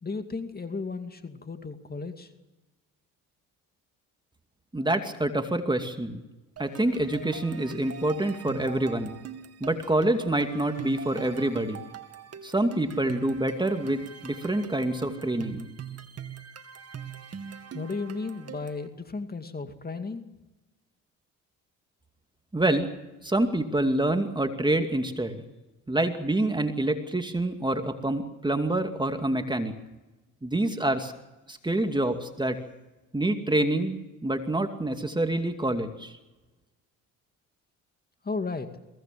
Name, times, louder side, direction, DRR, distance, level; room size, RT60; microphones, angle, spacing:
voice 1, 0.0-2.3 17.7-20.3 38.2-38.7, left 4 dB, 25° left, 7 dB, 2.4 m, -34 dB
voice 2, 4.7-6.2 6.6-9.1 9.6-11.8 12.4-15.7 22.5-22.9 23.2-25.4 25.9-29.7 30.4-31.1 31.5-32.6 33.1-34.0 34.2-36.2, right 1 dB, 10° right, 7 dB, 2.5 m, -27 dB
sound 1, 6.6-18.9, right 8 dB, 45° right, 2.3 m, -42 dB
22.5 x 17.5 x 7.6 m, 1.1 s
supercardioid pair, 70°, 36 cm